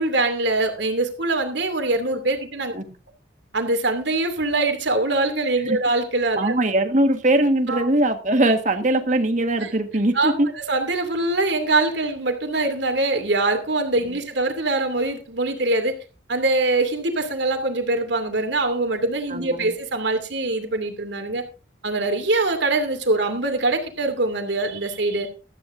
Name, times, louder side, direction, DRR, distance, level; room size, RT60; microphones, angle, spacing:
voice 1, 0.0-2.7 3.5-6.5 7.7-7.9 9.6-9.7 10.1-10.3 10.7-15.9 16.3-21.4 21.8-25.3, right 2 dB, 80° right, 6 dB, 2.6 m, -23 dB
voice 2, 6.4-10.5 14.1-14.2 19.3-19.8, right 1 dB, 40° right, 7 dB, 1.6 m, -21 dB
16.0 x 13.5 x 2.6 m, 0.31 s
head